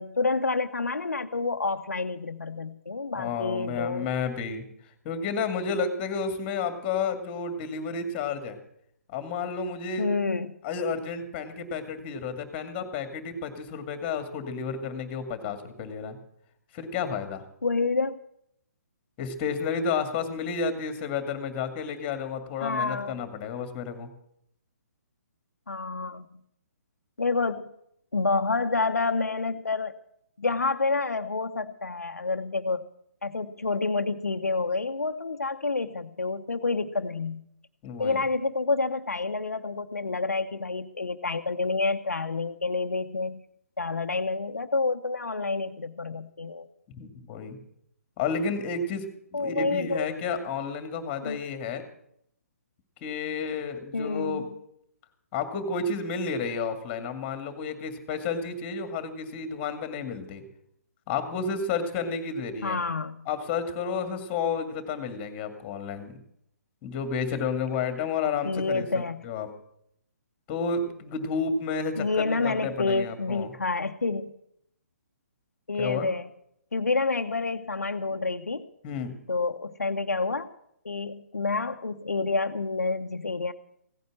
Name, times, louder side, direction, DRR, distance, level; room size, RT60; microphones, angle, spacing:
voice 1, 0.0-4.1 10.0-10.5 17.6-18.2 22.6-23.2 25.7-26.3 27.2-27.6 28.1-29.9 30.4-32.9 33.2-37.4 38.0-43.4 43.8-46.7 49.3-50.2 51.2-51.4 53.9-54.4 62.6-63.2 68.4-69.2 72.0-74.3 75.7-76.3 76.7-78.7 79.3-80.5 80.8-83.5, left 3 dB, 80° left, 7 dB, 0.8 m, -28 dB
voice 2, 3.2-4.6 5.0-8.6 9.1-10.1 10.6-16.2 16.7-17.4 19.2-24.1 37.8-38.2 46.9-47.6 48.2-49.1 49.3-51.9 53.0-54.4 55.3-60.4 61.1-62.8 63.3-66.2 66.8-69.5 70.5-73.5 75.8-76.1 78.8-79.2, left 5 dB, 25° left, 9 dB, 2.1 m, -31 dB
16.0 x 9.4 x 7.6 m, 0.74 s
figure-of-eight pair, 135°, 9 cm